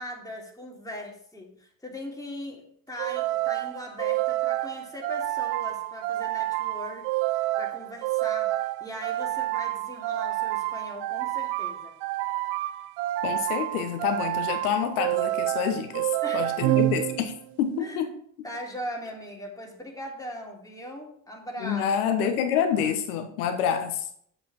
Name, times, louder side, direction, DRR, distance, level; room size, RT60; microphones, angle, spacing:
voice 1, 0.0-12.0 16.2-16.8 17.8-18.1 18.4-21.9, equal, 10° left, -1 dB, 3.2 m, -39 dB
sound 1, 3.0-17.5, right 16 dB, 70° right, 0.6 m, -28 dB
voice 2, 13.2-17.3 17.6-18.1 21.6-24.1, left 8 dB, 85° left, 8 dB, 1.2 m, -27 dB
8.3 x 7.8 x 4.5 m, 0.64 s
hypercardioid pair, 50°, 43 cm